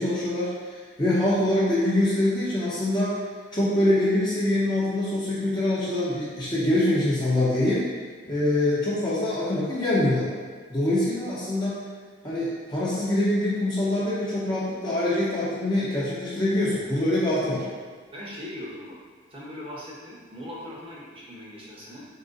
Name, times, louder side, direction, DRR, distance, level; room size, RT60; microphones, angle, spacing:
voice 1, 0.0-3.1 3.5-7.9 8.3-10.3 10.7-11.8 12.2-17.7, left 1 dB, 20° left, -8 dB, 0.7 m, -24 dB
voice 2, 18.1-19.0 19.3-22.1, left 1 dB, 25° right, -5 dB, 0.8 m, -39 dB
3.8 x 3.0 x 3.9 m, 1.5 s
head